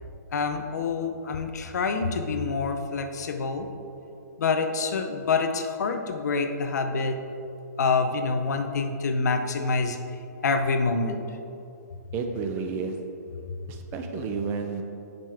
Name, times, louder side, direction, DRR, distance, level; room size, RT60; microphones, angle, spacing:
voice 1, 0.3-3.7 4.4-7.2 7.8-10.0 10.4-11.2, left 4 dB, 75° left, 7 dB, 0.8 m, -26 dB
voice 2, 12.1-13.0 13.7-14.8, right 5 dB, 25° right, 5 dB, 0.6 m, -31 dB
11.0 x 5.3 x 3.5 m, 2.7 s
hypercardioid pair, 150°, 9 cm